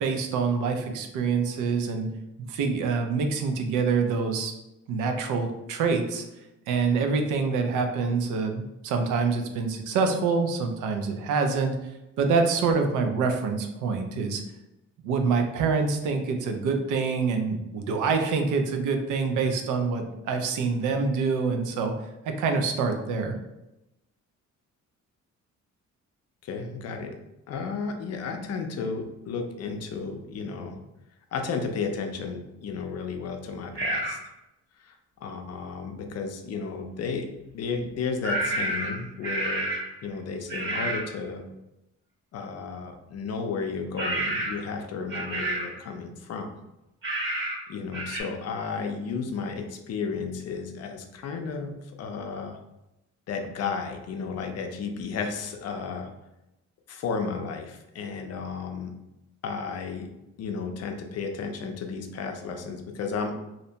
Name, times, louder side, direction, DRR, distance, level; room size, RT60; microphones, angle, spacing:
voice 1, 0.0-2.1 2.5-4.5 4.9-6.2 6.7-11.8 12.2-14.4 15.0-21.9 22.3-23.3, right 4 dB, 85° right, 5 dB, 0.5 m, -26 dB
voice 2, 26.4-27.1 27.5-30.8 31.3-34.2 34.8-34.9 35.2-37.3 37.5-39.7 40.0-41.4 42.3-46.5 47.7-52.6 53.3-56.1 56.9-58.9 59.4-60.1 60.4-63.4, left 5 dB, 55° left, 5 dB, 0.5 m, -33 dB
sound 1, 33.7-34.2 38.2-39.9 40.5-41.1 44.0-44.7 45.1-45.8 47.0-47.6 47.9-48.2, right 1 dB, 40° right, 1.1 m, -29 dB
2.7 x 2.1 x 2.7 m, 0.92 s
cardioid pair, 90°, 30 cm